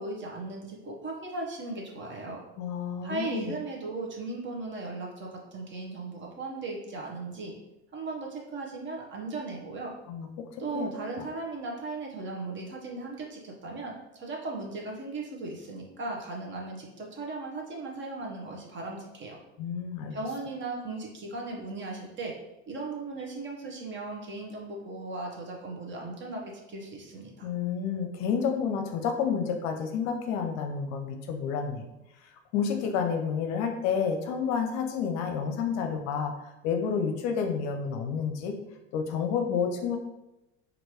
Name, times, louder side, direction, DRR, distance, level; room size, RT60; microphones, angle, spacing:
voice 1, 0.0-2.4 3.0-7.5 7.9-9.9 10.6-19.4 20.1-22.3 22.7-27.5, right 3 dB, 35° right, 0 dB, 1.1 m, -37 dB
voice 2, 2.6-3.5 10.1-10.5 10.7-10.9 11.2-11.3 19.6-20.2 27.4-31.9 32.5-38.6 38.9-40.0, left 6 dB, 55° left, 5 dB, 0.6 m, -30 dB
4.3 x 2.7 x 3.0 m, 0.93 s
hypercardioid pair, 80°, 34 cm